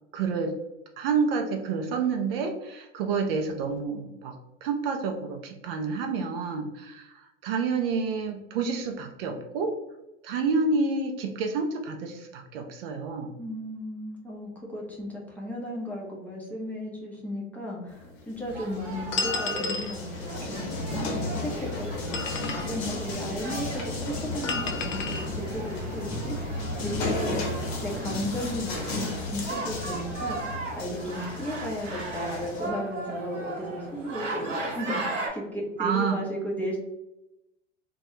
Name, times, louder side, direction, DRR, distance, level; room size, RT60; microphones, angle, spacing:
voice 1, 0.1-0.5 1.0-9.8 10.2-13.4 35.8-36.2, right 4 dB, 50° right, 3 dB, 0.4 m, -29 dB
voice 2, 13.4-20.9 21.1-27.5 27.8-36.8, equal, 5° left, -5 dB, 0.5 m, -35 dB
sound 1, 17.9-32.7, left 2 dB, 55° left, 0.8 m, -34 dB
sound 2, 18.5-35.3, right 2 dB, 80° right, 1.0 m, -38 dB
sound 3, 19.1-20.0 21.9-22.8 24.4-25.3, left 4 dB, 85° left, 0.5 m, -31 dB
2.2 x 2.2 x 2.9 m, 0.93 s
hypercardioid pair, 95°, 37 cm